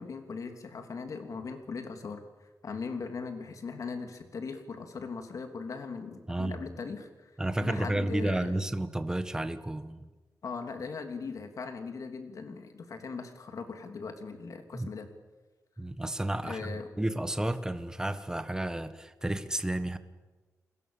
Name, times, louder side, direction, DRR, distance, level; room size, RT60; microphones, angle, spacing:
voice 1, 0.0-2.2 2.6-7.3 7.6-8.6 10.4-15.1 16.4-16.9, left 4 dB, 60° left, 6 dB, 3.0 m, -39 dB
voice 2, 6.3-6.6 7.4-10.1 14.7-14.9 15.8-20.0, right 1 dB, 10° right, 11 dB, 1.4 m, -32 dB
29.5 x 21.0 x 7.2 m, 1.3 s
wide cardioid pair, 130°, 6 cm